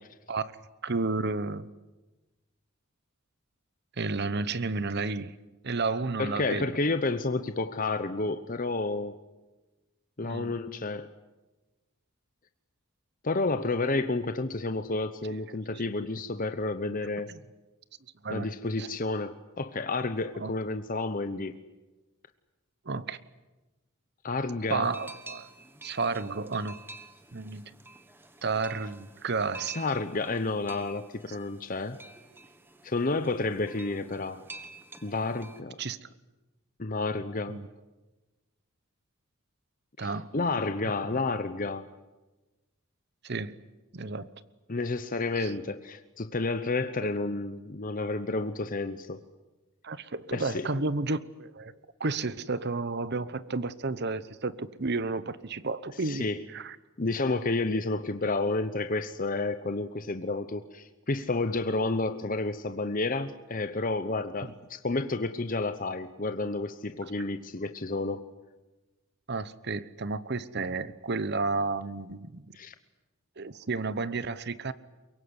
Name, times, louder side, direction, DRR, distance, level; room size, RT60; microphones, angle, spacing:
voice 1, 0.8-1.7 4.0-5.4 5.6-6.7 10.2-10.5 17.3-17.4 18.2-18.5 18.8-18.9 20.3-20.5 22.9-23.2 24.7-25.5 25.8-26.8 27.3-27.7 28.4-29.7 35.8-36.1 37.5-37.7 40.0-40.3 41.1-41.2 43.2-43.6 43.9-44.3 45.4-45.5 49.8-51.7 52.0-56.2 56.5-56.8 64.4-64.5 69.3-72.4 73.4-74.7, right 3 dB, 50° right, 15 dB, 1.0 m, -32 dB
voice 2, 6.2-9.2 10.2-11.1 13.2-17.4 18.3-21.6 24.2-24.9 29.7-32.0 32.8-34.4 35.0-35.8 36.8-37.6 40.0-41.9 44.7-49.2 50.3-50.7 56.0-56.4 57.0-68.2 72.5-72.7, left 3 dB, 40° left, 10 dB, 0.9 m, -30 dB
sound 1, 24.8-35.6, right 2 dB, 10° right, 1.5 m, -49 dB
23.0 x 23.0 x 9.7 m, 1.1 s
head